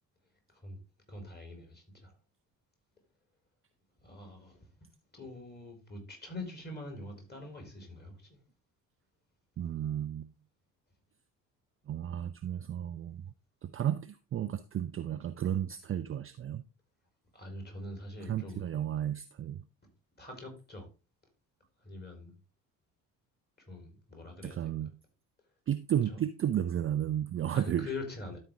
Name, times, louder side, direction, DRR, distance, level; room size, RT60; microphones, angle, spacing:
voice 1, 1.1-2.2 4.0-4.7 5.1-8.4 17.3-18.7 20.2-20.9 21.8-22.4 23.6-24.7 26.1-26.2 27.5-28.4, left 2 dB, 20° left, 3.9 m, -44 dB
voice 2, 9.6-10.3 11.9-13.3 13.6-16.6 18.2-19.6 24.4-24.9 25.7-27.9, right 10 dB, 30° right, 0.6 m, -33 dB
12.5 x 4.5 x 3.5 m
figure-of-eight pair, 50°, 47 cm